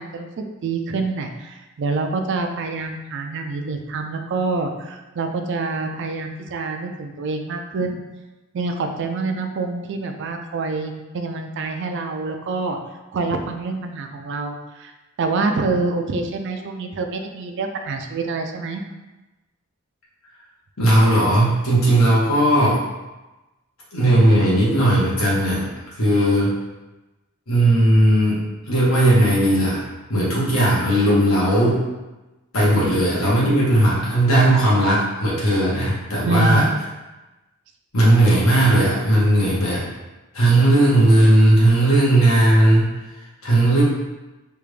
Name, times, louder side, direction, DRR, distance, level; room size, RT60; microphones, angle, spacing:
voice 1, 0.0-8.0 8.5-12.8 13.1-14.9 15.2-18.8 32.8-32.9 36.2-36.7, right 3 dB, 60° right, 5 dB, 0.4 m, -26 dB
voice 2, 20.8-22.8 23.9-25.7 26.0-26.5 27.5-29.8 30.1-31.8 32.5-36.7 37.9-39.8 40.3-42.9 43.4-43.8, right 1 dB, 85° left, -6 dB, 1.2 m, -17 dB
3.4 x 2.4 x 3.2 m, 1.1 s
head